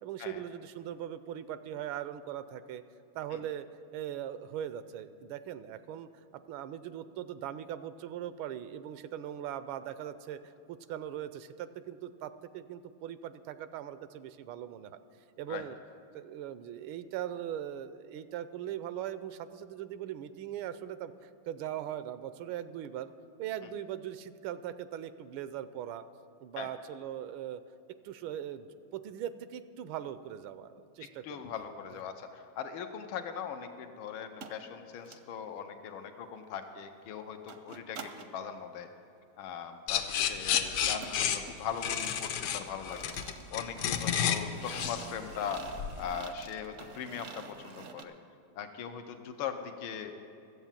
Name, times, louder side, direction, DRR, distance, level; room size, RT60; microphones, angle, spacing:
voice 1, 0.0-2.8 3.1-3.7 3.9-15.0 15.4-15.8 16.1-23.1 23.4-26.0 26.4-27.6 28.0-31.4, right 10 dB, 85° right, 13 dB, 1.4 m, -40 dB
voice 2, 31.2-38.9 39.4-45.6 46.0-48.1 48.6-50.1, left 7 dB, 90° left, 7 dB, 1.5 m, -40 dB
sound 1, 34.4-34.6 35.0-35.2 37.5-38.3 40.5-48.0, right 5 dB, 65° right, 0.7 m, -48 dB
sound 2, 39.9-46.0, left 9 dB, 70° left, 1.2 m, -31 dB
13.0 x 8.2 x 7.3 m, 2.6 s
omnidirectional pair, 2.2 m